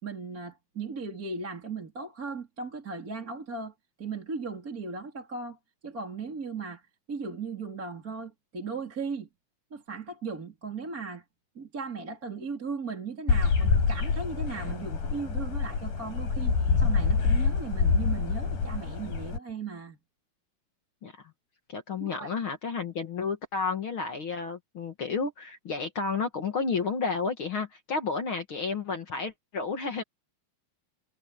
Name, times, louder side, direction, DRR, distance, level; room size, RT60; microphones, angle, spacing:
voice 1, 0.0-5.6 5.8-6.8 7.1-9.3 9.7-11.2 11.6-20.0 22.0-22.3, right 4 dB, 25° right, 3.9 m, -37 dB
sound 1, 13.3-19.4, left 5 dB, 85° left, 6.9 m, -26 dB
voice 2, 21.7-30.0, left 4 dB, 45° left, 1.9 m, -31 dB
omnidirectional pair, 4.0 m